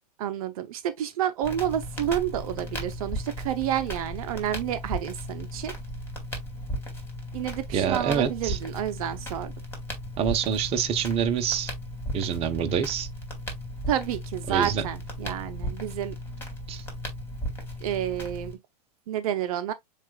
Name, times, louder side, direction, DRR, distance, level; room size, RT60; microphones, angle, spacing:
voice 1, 0.2-5.7 7.3-9.5 13.9-16.1 17.8-18.6 19.1-19.7, right 10 dB, 60° right, 0.6 m, -29 dB
Crackle, 1.4-18.5, equal, 10° left, 2.1 m, -36 dB
voice 2, 7.7-8.6 10.2-11.7 12.1-13.1 14.5-14.9 16.7-16.8, right 8 dB, 30° right, 0.8 m, -26 dB
7.2 x 2.4 x 2.3 m
hypercardioid pair, 115°, 20 cm